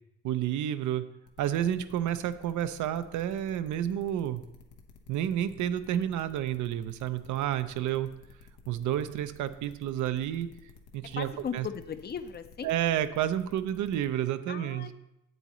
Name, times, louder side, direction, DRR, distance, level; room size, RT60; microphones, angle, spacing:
voice 1, 0.2-1.0 1.4-4.4 5.1-8.1 8.7-10.5 10.9-11.7 12.6-14.9, right 11 dB, 75° right, 11 dB, 0.5 m, -30 dB
sound 1, 1.3-14.1, left 5 dB, 85° left, 1.0 m, -54 dB
voice 2, 11.1-12.7 14.5-14.9, left 7 dB, 35° left, 11 dB, 0.5 m, -37 dB
8.2 x 8.0 x 3.0 m, 0.88 s
cardioid pair, 90°, 30 cm